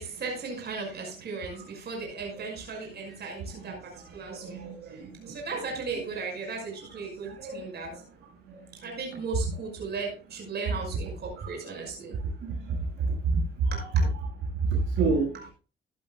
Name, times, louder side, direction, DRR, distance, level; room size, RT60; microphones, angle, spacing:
voice 1, 0.0-7.9 8.8-12.2 13.7-14.0 15.3-15.5, right 4 dB, 55° right, 1 dB, 5.7 m, -37 dB
voice 2, 4.4-5.4 7.3-7.7 12.7-13.1 13.3-13.7 14.6-15.4, right 4 dB, 85° right, -1 dB, 5.8 m, -28 dB
15.0 x 12.0 x 2.3 m, 0.33 s
cardioid pair, 90°, 20 cm